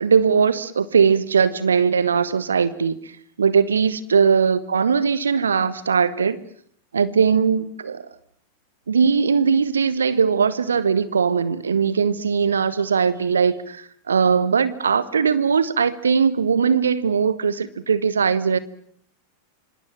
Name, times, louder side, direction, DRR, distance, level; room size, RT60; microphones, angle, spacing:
voice 1, 0.0-3.1 3.4-6.4 6.9-8.1 8.9-18.6, right 6 dB, 70° right, 1.3 m, -20 dB
27.0 x 26.5 x 7.5 m
figure-of-eight pair, 90°, 0 cm